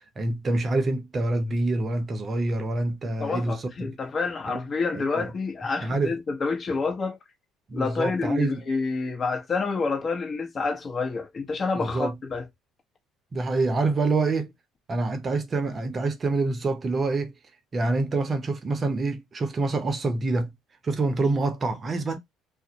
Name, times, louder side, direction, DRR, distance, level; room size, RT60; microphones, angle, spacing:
voice 1, 0.2-4.0 4.5-4.6 4.9-5.3 5.8-6.1 7.7-8.6 11.7-12.2 13.3-14.5 14.9-17.3 17.7-20.5 20.8-22.2, right 3 dB, 35° right, 0.6 m, -26 dB
voice 2, 3.2-7.2 7.7-12.4, left 4 dB, 40° left, 0.9 m, -28 dB
2.4 x 2.0 x 2.7 m
hypercardioid pair, 70°, 0 cm